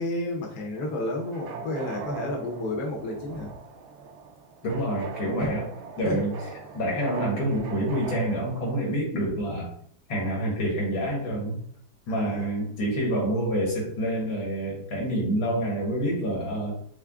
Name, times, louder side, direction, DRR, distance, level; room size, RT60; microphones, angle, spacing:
voice 1, 0.0-3.5 5.4-5.5 6.0-6.2 12.1-12.5, left 2 dB, 60° left, 0 dB, 1.3 m, -31 dB
sound 1, 0.8-8.9, right 5 dB, 85° right, 1.4 m, -40 dB
voice 2, 4.6-5.6 6.0-6.3 6.7-9.7 10.1-11.6 12.1-16.7, right 1 dB, 80° left, -2 dB, 2.4 m, -27 dB
5.8 x 2.1 x 3.6 m, 0.65 s
omnidirectional pair, 2.1 m